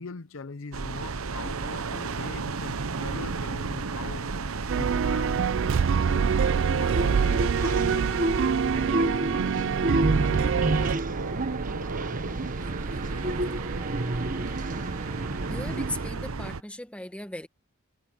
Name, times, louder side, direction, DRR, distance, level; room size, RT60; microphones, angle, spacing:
voice 1, 0.0-8.3 8.9-9.3 10.3-10.4, left 4 dB, 65° left, 0.7 m, -41 dB
sound 1, 0.7-16.6, right 4 dB, 85° right, 0.9 m, -33 dB
sound 2, 4.7-11.0, right 6 dB, 60° right, 0.4 m, -25 dB
sound 3, 6.9-16.1, right 1 dB, 40° right, 1.3 m, -31 dB
voice 2, 15.5-17.5, left 1 dB, 5° left, 1.6 m, -37 dB
head